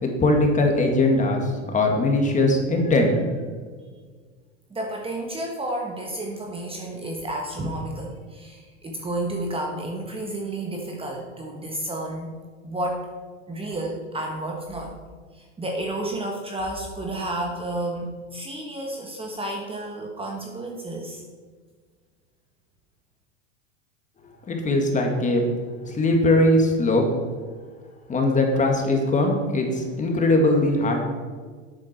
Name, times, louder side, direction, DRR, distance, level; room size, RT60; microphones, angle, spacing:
voice 1, 0.0-3.2 24.5-25.6 25.9-27.0 28.1-31.0, left 2 dB, 20° left, 2 dB, 2.1 m, -20 dB
voice 2, 4.7-12.3 12.6-13.1 13.5-14.9 15.3-21.2, right 1 dB, 15° right, 1 dB, 1.3 m, -31 dB
11.5 x 8.6 x 4.5 m, 1.5 s
supercardioid pair, 125°, 37 cm